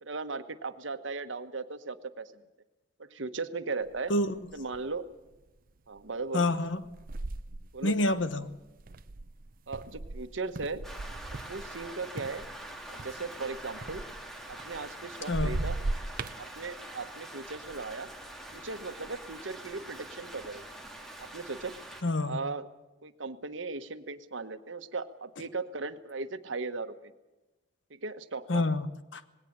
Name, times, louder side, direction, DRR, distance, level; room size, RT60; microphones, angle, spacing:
voice 1, 0.0-2.3 3.0-4.1 4.5-5.1 5.9-6.5 7.7-8.1 9.7-10.8 11.3-12.4 12.9-14.0 14.5-15.7 16.4-18.1 18.5-20.6 21.2-21.7 22.2-22.7 23.0-27.1 27.9-28.6, right 4 dB, 90° right, 10 dB, 1.3 m, -37 dB
sound 1, 3.9-4.0 4.5-4.9 5.5-5.7 6.6-11.9 12.2-15.0 15.3-16.4, right 2 dB, 50° right, 0.7 m, -37 dB
voice 2, 6.3-6.8 7.8-8.6 15.3-15.6 22.0-22.4 28.5-29.2, left 2 dB, 75° left, 13 dB, 1.1 m, -28 dB
Rain, 10.8-22.0, right 1 dB, ahead, 2.7 m, -45 dB
19.5 x 17.5 x 8.8 m, 1.1 s
head